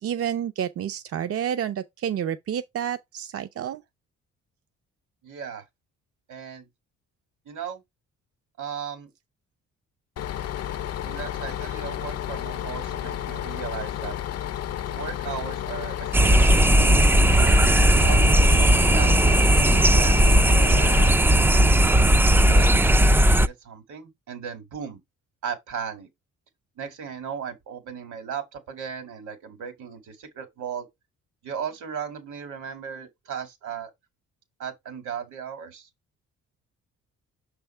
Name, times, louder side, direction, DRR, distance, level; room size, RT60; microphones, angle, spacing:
voice 1, 0.0-3.8, right 9 dB, 50° right, 0.6 m, -29 dB
voice 2, 5.2-5.6 6.3-6.7 7.5-7.8 8.6-9.1 11.1-14.1 14.9-17.5 18.0-22.0 22.5-25.0 25.4-26.1 26.8-30.9 31.4-33.9 34.6-35.9, right 7 dB, 75° right, 2.2 m, -37 dB
Bus, 10.2-21.1, left 11 dB, 55° left, 0.6 m, -32 dB
sound 1, 16.1-23.5, right 1 dB, 10° right, 0.3 m, -17 dB
6.3 x 3.4 x 4.4 m
cardioid pair, 90°, 30 cm